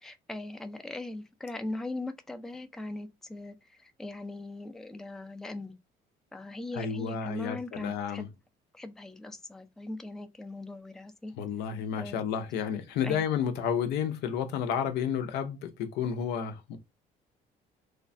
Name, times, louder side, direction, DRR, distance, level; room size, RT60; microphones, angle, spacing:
voice 1, 0.0-5.7 6.3-8.3 8.7-11.3 11.9-12.2 13.0-13.2, left 2 dB, 5° left, 0.3 m, -40 dB
voice 2, 6.7-8.3 11.4-16.8, left 8 dB, 80° left, 0.5 m, -31 dB
3.1 x 2.2 x 2.5 m
cardioid pair, 110°, 17 cm